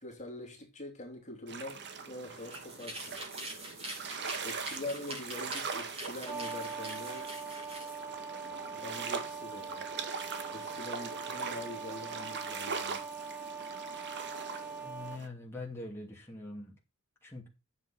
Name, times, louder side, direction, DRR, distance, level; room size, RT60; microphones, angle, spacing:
voice 1, 0.0-3.2 4.4-7.3 8.6-9.9 10.5-13.3, left 1 dB, 35° left, 2.8 m, -44 dB
sound 1, 1.5-15.3, right 5 dB, 50° right, 1.5 m, -41 dB
sound 2, 2.4-8.0, right 1 dB, 25° right, 4.8 m, -44 dB
sound 3, 6.2-15.2, right 5 dB, 10° right, 0.8 m, -42 dB
voice 2, 14.8-16.8 17.2-17.5, left 2 dB, 10° left, 2.8 m, -43 dB
9.9 x 7.6 x 4.5 m
head